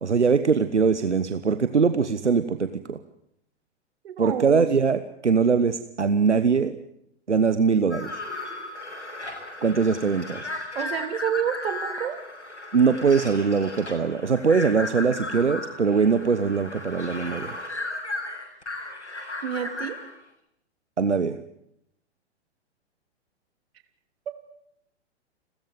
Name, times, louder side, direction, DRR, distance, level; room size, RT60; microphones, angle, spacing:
voice 1, 0.0-3.0 4.2-6.8 7.3-8.1 9.6-10.5 12.7-17.6 21.0-21.4, right 5 dB, 85° right, 11 dB, 1.2 m, -22 dB
voice 2, 4.0-4.7 10.7-12.2 19.4-20.0 24.3-24.4, right 9 dB, 60° right, 8 dB, 3.4 m, -29 dB
sound 1, 7.9-20.1, left 2 dB, 85° left, 7.3 m, -35 dB
29.5 x 14.0 x 9.4 m, 0.77 s
figure-of-eight pair, 105°, 34 cm